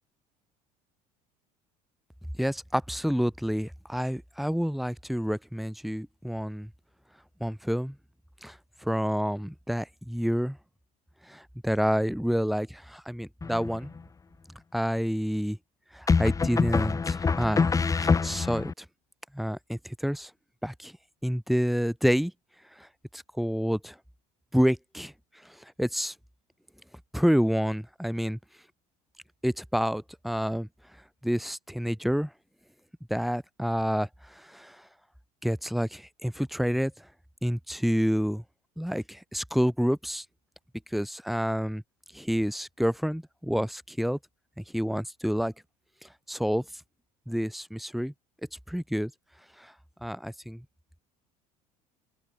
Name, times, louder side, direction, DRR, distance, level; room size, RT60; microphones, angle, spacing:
voice 1, 2.4-6.7 7.4-8.0 8.4-8.6 8.8-10.6 11.3-13.9 14.7-15.6 15.9-18.8 19.3-20.3 20.6-20.9 21.2-22.3 22.8-22.9 23.1-23.9 24.5-25.1 25.4-26.1 27.1-28.4 29.4-30.7 31.2-32.3 33.1-34.8 35.4-36.9 37.4-38.4 38.8-40.2 40.9-41.8 42.1-44.2 44.6-45.5 46.0-46.6 47.3-48.1 48.7-49.1 49.6-49.7 50.0-50.6, equal, ahead, 3.3 m, -28 dB
sound 1, 13.4-14.0 16.1-18.7, left 5 dB, 15° left, 0.6 m, -25 dB
open air
hypercardioid pair, 65°, 19 cm